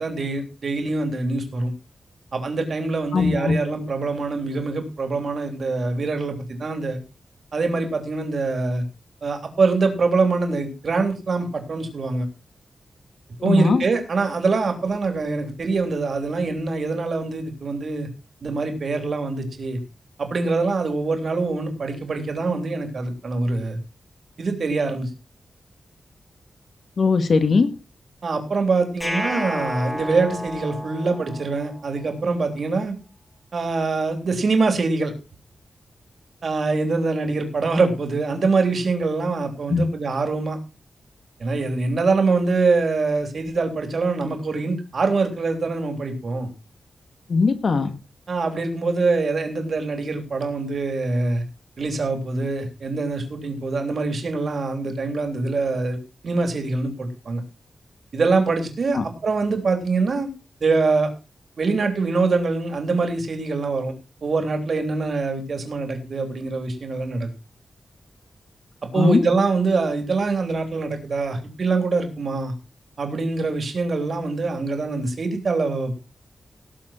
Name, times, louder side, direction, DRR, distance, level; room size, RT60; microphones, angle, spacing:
voice 1, 0.0-1.7 2.3-7.0 7.5-8.8 9.2-12.3 13.4-18.1 18.4-19.8 20.2-23.8 24.4-25.1 28.2-32.9 33.5-35.1 36.4-40.6 41.4-46.5 48.3-51.4 51.8-56.0 56.2-57.4 58.1-60.3 60.6-61.1 61.6-63.9 64.2-67.3 68.9-72.5 73.0-76.1, right 3 dB, 50° right, 5 dB, 3.4 m, -24 dB
voice 2, 3.1-3.6 13.4-13.8 27.0-27.7 39.7-39.9 47.3-47.9 58.9-59.0 68.9-69.2, left 4 dB, 50° left, 8 dB, 1.9 m, -19 dB
sound 1, 29.0-32.1, equal, 15° left, 2.2 m, -31 dB
18.5 x 7.6 x 4.4 m, 0.31 s
wide cardioid pair, 180°, 0 cm